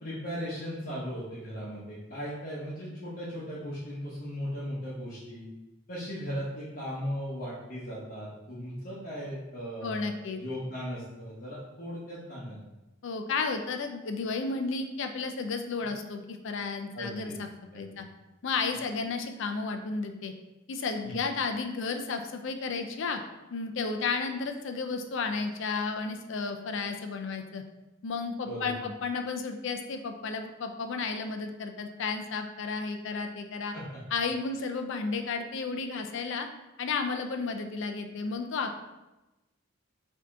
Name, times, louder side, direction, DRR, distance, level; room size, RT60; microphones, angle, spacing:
voice 1, 0.0-5.5 5.9-12.6 16.9-17.4 17.7-17.8 21.0-21.1 28.4-28.9 33.7-34.0, equal, 45° left, -8 dB, 0.9 m, -37 dB
voice 2, 9.8-10.4 13.0-17.5 17.8-18.0 18.4-20.3 20.7-23.2 23.5-27.6 28.0-33.8 34.1-36.5 36.8-38.8, left 4 dB, 65° left, 6 dB, 0.5 m, -33 dB
4.9 x 2.8 x 3.5 m, 1.0 s
head